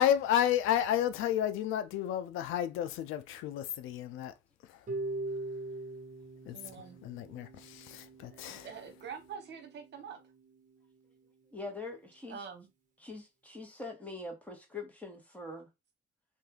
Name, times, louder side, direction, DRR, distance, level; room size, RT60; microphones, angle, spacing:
voice 1, 0.0-4.3 6.5-6.6 7.0-8.7, left 10 dB, 90° left, 0.5 m, -31 dB
Harp, 4.9-10.9, right 2 dB, 40° right, 1.1 m, -43 dB
voice 2, 6.5-7.0 8.3-10.2 12.3-12.7, right 6 dB, 60° right, 1.1 m, -45 dB
voice 3, 11.5-12.4 13.0-15.7, left 2 dB, 5° left, 1.3 m, -43 dB
2.7 x 2.6 x 3.5 m
cardioid pair, 90°, 20 cm